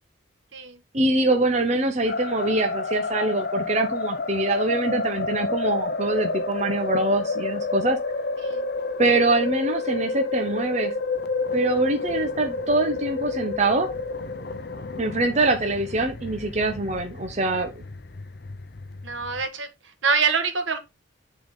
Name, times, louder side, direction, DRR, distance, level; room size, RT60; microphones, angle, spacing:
voice 1, 0.9-8.0 9.0-10.9 11.5-13.9 15.0-17.8, right 2 dB, 35° right, 0.8 m, -24 dB
sound 1, 2.1-19.5, left 3 dB, 50° left, 0.6 m, -30 dB
voice 2, 19.0-19.7 20.0-20.8, right 5 dB, 75° right, 1.5 m, -25 dB
9.2 x 3.9 x 3.9 m
head